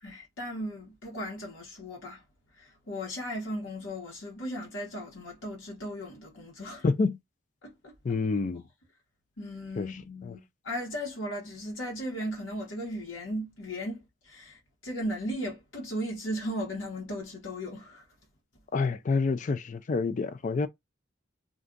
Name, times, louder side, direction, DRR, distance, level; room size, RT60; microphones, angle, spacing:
voice 1, 0.0-2.2 2.5-6.8 7.6-7.9 9.4-18.0, equal, 85° left, 1.1 m, -36 dB
voice 2, 6.8-7.2 8.0-8.6 9.8-10.0 10.2-10.4 18.7-20.7, left 4 dB, 40° left, 0.3 m, -28 dB
2.5 x 2.3 x 3.7 m
head